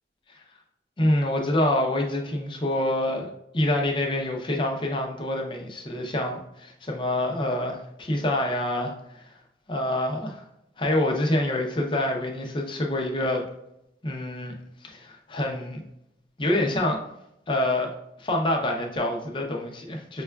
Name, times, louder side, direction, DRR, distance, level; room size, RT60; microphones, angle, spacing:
voice 1, 1.0-3.3 3.5-9.3 9.7-10.4 10.8-13.4 14.0-14.5 14.8-15.8 16.4-17.0 17.5-20.2, left 1 dB, 30° left, 1 dB, 0.5 m, -26 dB
5.3 x 2.3 x 2.2 m, 0.82 s
head